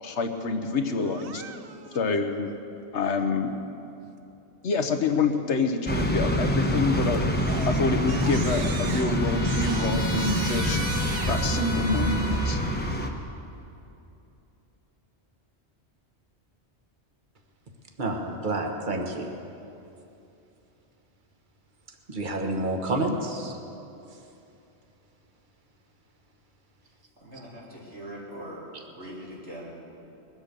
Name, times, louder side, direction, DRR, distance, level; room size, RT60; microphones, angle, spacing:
voice 1, 0.0-1.4 1.9-2.5 2.9-3.5 4.6-7.2 7.7-10.8 11.3-12.6, left 4 dB, 85° left, 6 dB, 1.3 m, -27 dB
Crying sobbing, 1.0-2.0 6.7-7.0 7.4-11.5, right 8 dB, 60° right, 0.8 m, -39 dB
sound 1, 5.9-13.1, equal, 10° left, 0.9 m, -26 dB
Trumpet, 8.1-12.8, left 2 dB, 60° left, 1.9 m, -37 dB
voice 2, 18.0-19.3 22.1-23.6, right 2 dB, 45° right, 3 dB, 1.5 m, -29 dB
voice 3, 27.2-29.9, equal, 85° right, -6 dB, 3.7 m, -41 dB
21.5 x 8.1 x 6.7 m, 2.8 s
omnidirectional pair, 1.1 m